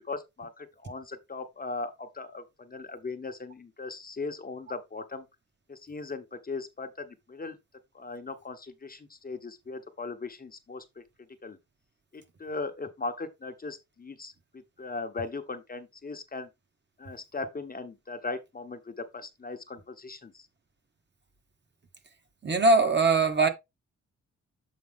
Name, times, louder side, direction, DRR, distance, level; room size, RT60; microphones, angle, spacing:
voice 1, 0.0-5.2 5.7-7.6 7.9-11.0 11.4-11.6 12.1-16.5 17.0-20.5, left 3 dB, 30° left, 1.0 m, -38 dB
voice 2, 22.4-23.5, right 3 dB, 35° right, 1.4 m, -21 dB
7.4 x 4.6 x 3.5 m
cardioid pair, 100°, 29 cm